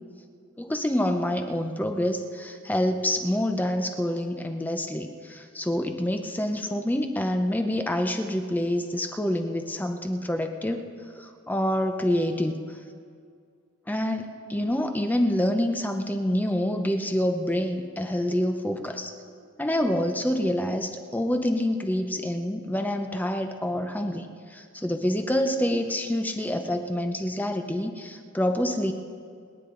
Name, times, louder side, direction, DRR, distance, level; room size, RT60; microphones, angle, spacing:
voice 1, 0.6-10.9 11.2-12.8 13.9-19.1 19.6-28.9, left 1 dB, 10° left, 5 dB, 0.7 m, -27 dB
28.5 x 9.8 x 3.9 m, 2.3 s
head